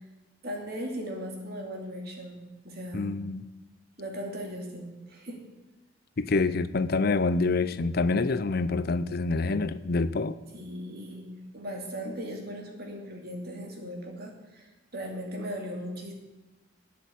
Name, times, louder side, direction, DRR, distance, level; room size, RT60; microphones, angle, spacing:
voice 1, 0.4-3.1 4.0-5.4 10.5-16.1, equal, 55° right, 2.5 m, -38 dB
voice 2, 2.9-3.4 6.2-10.4, left 3 dB, 55° left, 0.6 m, -26 dB
9.5 x 8.3 x 8.5 m
head